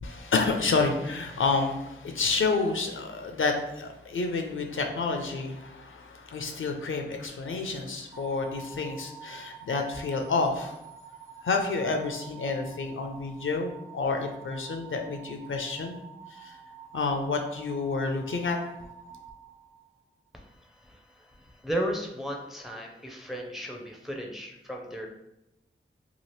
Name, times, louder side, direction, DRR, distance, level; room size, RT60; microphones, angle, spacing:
voice 1, 0.0-10.7 11.4-16.0 16.3-16.6 16.9-18.6, left 4 dB, 70° left, 4 dB, 0.4 m, -29 dB
sound 1, 8.1-20.3, right 5 dB, 40° right, 0.8 m, -48 dB
voice 2, 20.3-25.1, equal, ahead, 1 dB, 0.5 m, -35 dB
2.8 x 2.4 x 3.1 m, 0.89 s
wide cardioid pair, 55°, 21 cm